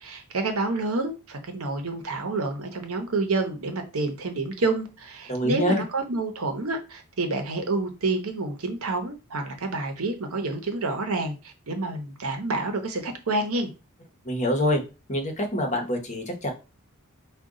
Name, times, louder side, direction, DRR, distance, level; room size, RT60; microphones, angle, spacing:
voice 1, 0.0-13.7, right 2 dB, 75° right, 6 dB, 0.8 m, -28 dB
voice 2, 5.3-5.8 14.2-14.8 15.1-16.5, equal, 35° left, 2 dB, 1.0 m, -25 dB
5.0 x 2.3 x 3.7 m, 0.30 s
head